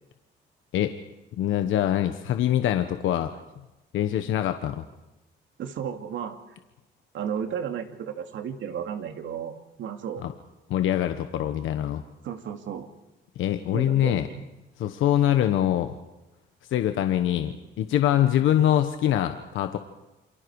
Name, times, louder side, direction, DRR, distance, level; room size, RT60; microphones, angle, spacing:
voice 1, 1.4-3.4 3.9-4.8 10.2-10.3 10.7-12.0 13.4-14.3 14.8-16.0 16.7-19.8, left 11 dB, 80° left, 8 dB, 1.3 m, -24 dB
voice 2, 5.6-6.4 7.1-10.2 12.2-12.9 13.7-14.5 18.4-18.5, right 8 dB, 75° right, 6 dB, 2.5 m, -33 dB
28.5 x 23.5 x 4.8 m, 1.0 s
cardioid pair, 90°, 20 cm